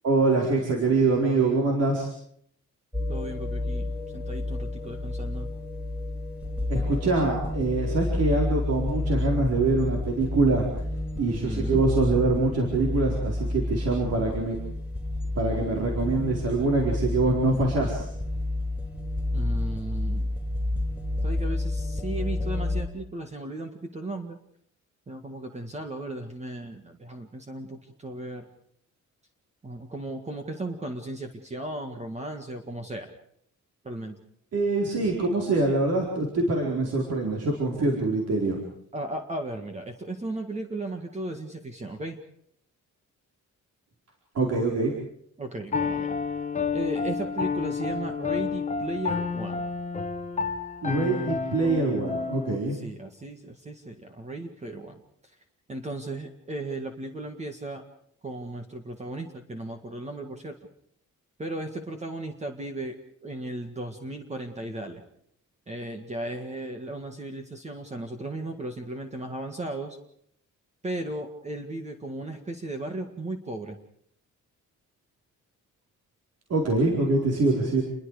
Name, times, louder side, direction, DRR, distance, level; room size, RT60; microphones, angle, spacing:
voice 1, 0.0-2.1 6.7-10.6 11.2-14.6 15.3-18.1 34.5-38.6 44.3-45.0 50.8-52.8 76.5-77.8, right 3 dB, 55° right, 0 dB, 4.6 m, -24 dB
sound 1, 2.9-22.8, left 2 dB, 5° right, 4.2 m, -30 dB
voice 2, 3.1-5.5 11.3-11.8 19.3-20.4 21.2-24.4 25.1-28.5 29.6-33.1 33.8-34.2 38.9-42.2 45.4-46.2 46.7-49.6 52.7-55.0 55.7-57.8 58.2-60.6 61.4-63.0 63.2-65.0 65.7-70.0 70.8-73.8, right 1 dB, 20° right, 5 dB, 1.9 m, -36 dB
Piano, 45.7-52.6, left 5 dB, 25° left, 1.3 m, -30 dB
28.5 x 22.5 x 5.0 m, 0.66 s
wide cardioid pair, 170°, 30 cm